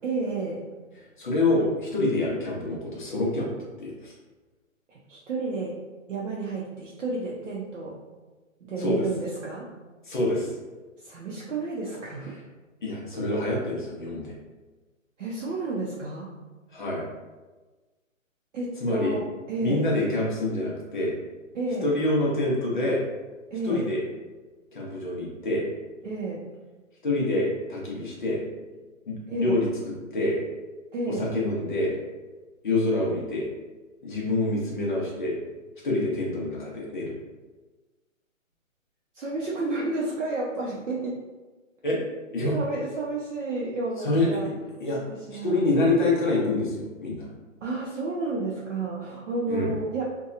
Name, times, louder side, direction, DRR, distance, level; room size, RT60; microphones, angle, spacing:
voice 1, 0.0-0.7 4.9-5.8 6.1-8.0 8.6-9.7 11.0-12.4 15.2-16.4 18.5-19.9 21.5-21.9 23.5-23.9 26.0-26.5 29.3-29.6 30.9-31.3 39.1-41.2 42.5-44.5 45.3-46.0 47.6-50.1, right 3 dB, 65° right, -5 dB, 0.6 m, -31 dB
voice 2, 1.2-3.5 3.8-4.1 8.8-9.0 10.0-10.5 12.8-14.4 16.7-17.0 18.8-19.2 19.6-21.1 21.8-23.0 23.6-24.0 24.7-25.6 27.0-28.4 29.1-29.7 30.1-30.4 31.1-32.0 32.6-33.5 34.0-35.4 35.8-37.1 41.8-42.0 42.3-42.6 44.0-44.5 44.8-45.0 45.3-47.3 49.5-49.7, left 2 dB, 40° left, -4 dB, 0.6 m, -26 dB
2.8 x 2.2 x 2.4 m, 1.2 s
hypercardioid pair, 170°, 40 cm